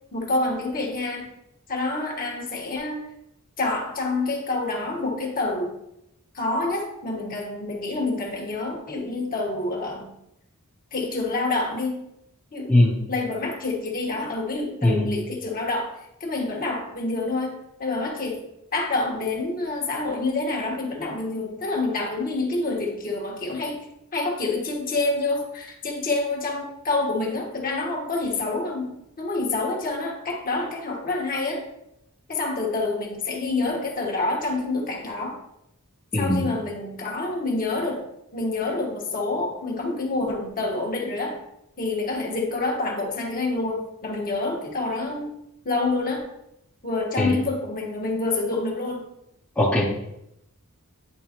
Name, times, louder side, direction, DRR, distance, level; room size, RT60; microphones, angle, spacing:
voice 1, 0.1-1.3 1.7-3.0 3.6-5.8 6.3-10.1 10.9-12.0 12.5-12.7 13.1-18.4 18.7-23.8 24.1-31.6 32.3-35.4 36.1-38.0 38.3-41.4 41.8-45.3 45.6-46.3 46.8-49.1, left 2 dB, 40° left, -1 dB, 1.4 m, -27 dB
voice 2, 36.1-36.4 47.2-47.3 49.6-49.8, left 1 dB, 5° left, -5 dB, 0.9 m, -19 dB
9.9 x 3.7 x 3.0 m, 0.82 s
head